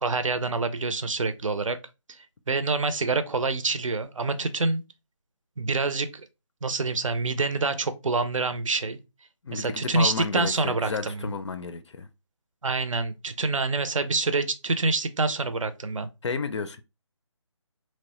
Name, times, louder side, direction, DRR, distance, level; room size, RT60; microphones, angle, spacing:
voice 1, 0.0-1.8 2.2-4.8 5.6-6.3 6.6-9.0 9.5-11.3 12.6-16.1, right 3 dB, 85° right, 0.6 m, -26 dB
voice 2, 9.4-12.1 16.2-16.8, left 4 dB, 65° left, 0.4 m, -32 dB
3.0 x 2.1 x 2.9 m
figure-of-eight pair, 165°, 16 cm